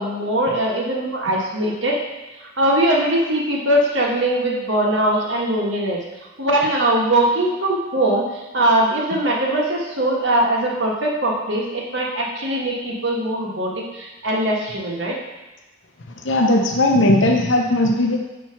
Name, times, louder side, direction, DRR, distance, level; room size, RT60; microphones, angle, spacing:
voice 1, 0.0-2.0 2.6-6.0 6.4-15.1, right 1 dB, 70° right, -2 dB, 1.5 m, -21 dB
voice 2, 16.2-18.2, left 1 dB, 75° left, 1 dB, 0.8 m, -17 dB
5.7 x 4.6 x 5.7 m, 1.1 s
head